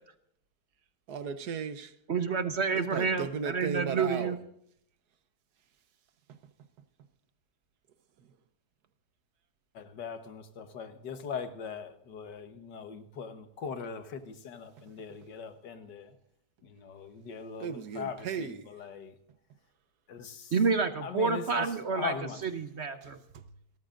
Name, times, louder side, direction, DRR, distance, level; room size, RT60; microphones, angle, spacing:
voice 1, 1.1-1.9 2.7-4.4 6.3-6.4 17.6-18.7 23.0-23.5, right 6 dB, 70° right, 1.5 m, -36 dB
voice 2, 2.1-4.4 20.5-22.1 22.4-23.2, right 5 dB, 50° right, 0.9 m, -29 dB
voice 3, 9.7-16.2 16.6-19.2 20.1-20.5 21.0-21.7 21.9-22.4, left 6 dB, 80° left, 1.8 m, -40 dB
28.5 x 14.0 x 2.5 m
omnidirectional pair, 1.8 m